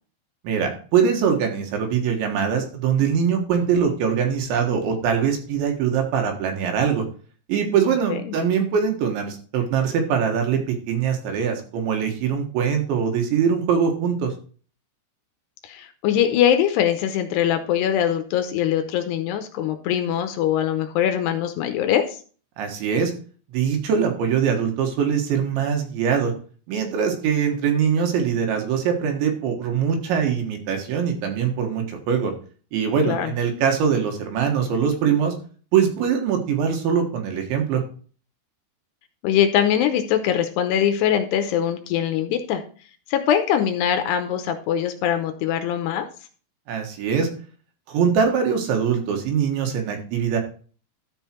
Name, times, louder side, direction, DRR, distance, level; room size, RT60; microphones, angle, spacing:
voice 1, 0.5-7.1 7.5-14.3 22.6-23.1 23.5-26.3 26.7-32.3 32.7-35.3 35.7-37.8 46.7-47.3 47.9-50.4, right 7 dB, 75° right, 3 dB, 3.7 m, -22 dB
voice 2, 15.6-22.2 33.1-33.3 39.2-42.6 43.1-46.1, left 10 dB, 80° left, 7 dB, 2.5 m, -22 dB
13.0 x 5.5 x 4.4 m, 0.42 s
omnidirectional pair, 5.6 m